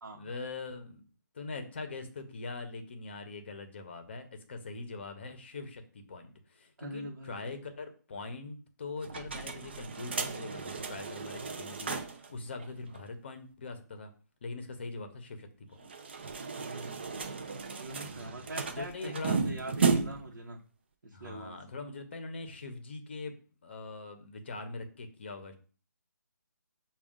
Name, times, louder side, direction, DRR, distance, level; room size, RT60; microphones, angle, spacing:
voice 1, 0.2-1.1 1.3-14.1 14.4-15.9 17.9-19.4 21.1-23.3 23.6-25.5, left 3 dB, 35° left, 7 dB, 0.7 m, -42 dB
voice 2, 6.8-7.5 16.4-17.2 17.7-20.6 21.0-21.6, right 1 dB, 90° right, -1 dB, 0.9 m, -43 dB
sound 1, 9.0-12.3 12.6-12.7 12.9-13.0 15.8-20.4, right 5 dB, 35° right, 0.4 m, -34 dB
6.0 x 2.3 x 3.6 m, 0.39 s
hypercardioid pair, 170°, 10 cm